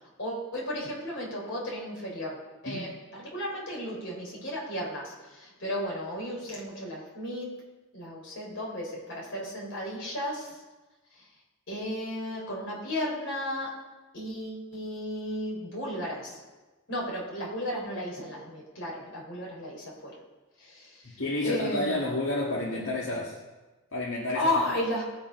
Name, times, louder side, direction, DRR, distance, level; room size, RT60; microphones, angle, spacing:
voice 1, 0.2-7.5 7.9-10.6 11.1-11.2 11.7-13.8 14.1-16.4 16.9-20.2 20.6-22.0 24.3-25.0, left 1 dB, 55° left, -3 dB, 3.6 m, -34 dB
voice 2, 21.0-23.4 23.9-24.5, left 2 dB, 75° left, -5 dB, 1.7 m, -30 dB
18.5 x 6.9 x 5.2 m, 1.2 s
head